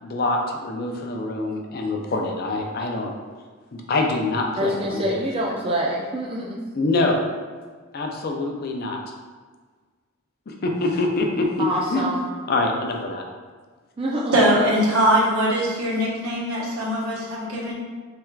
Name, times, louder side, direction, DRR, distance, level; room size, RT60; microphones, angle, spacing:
voice 1, 0.0-3.1 3.7-5.2 6.7-7.3 7.9-9.0 10.5-12.0 12.5-13.2, left 2 dB, 45° left, 1 dB, 0.4 m, -25 dB
voice 2, 4.6-6.6 11.6-12.3 14.0-14.4, right 1 dB, 25° right, -3 dB, 0.4 m, -26 dB
voice 3, 14.3-17.7, equal, 80° right, -6 dB, 1.1 m, -21 dB
3.3 x 2.3 x 4.4 m, 1.5 s
head